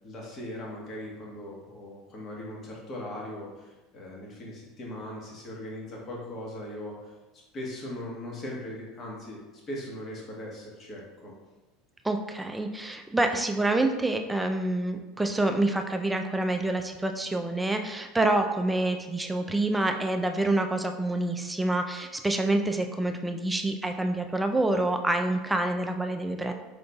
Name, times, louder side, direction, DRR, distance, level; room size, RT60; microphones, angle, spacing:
voice 1, 0.0-7.1 7.5-9.4 9.7-11.3, left 1 dB, 40° left, -3 dB, 1.4 m, -39 dB
voice 2, 12.0-26.5, right 2 dB, 10° right, 5 dB, 0.4 m, -27 dB
5.1 x 3.8 x 2.3 m, 1.1 s
hypercardioid pair, 75°, 0 cm